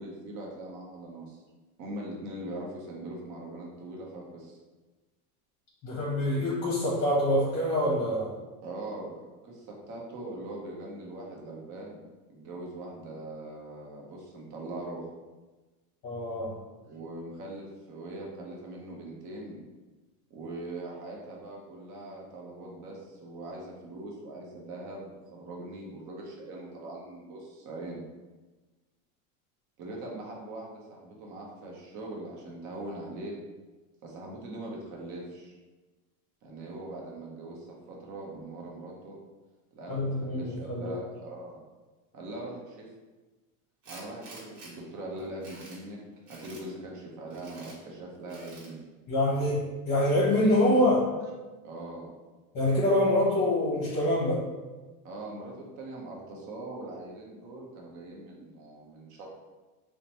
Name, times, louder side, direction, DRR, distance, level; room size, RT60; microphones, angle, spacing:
voice 1, 0.0-1.4 1.8-4.6 8.6-12.0 12.3-15.0 16.9-19.6 20.3-28.0 29.8-33.3 34.0-35.6 36.4-39.2 39.7-41.6 42.1-42.9 43.9-46.0 46.3-48.8 51.6-52.1 55.0-59.3, right 2 dB, 40° right, -2 dB, 0.7 m, -41 dB
voice 2, 5.8-8.3 16.0-16.5 39.9-41.0 49.1-51.1 52.5-54.4, left 1 dB, 35° left, -5 dB, 0.8 m, -25 dB
Tools, 43.8-44.7 45.2-45.8 46.3-46.6 47.3-47.8 48.3-48.7, right 2 dB, 60° right, 1.1 m, -48 dB
2.8 x 2.1 x 2.8 m, 1.2 s
supercardioid pair, 125°, 45 cm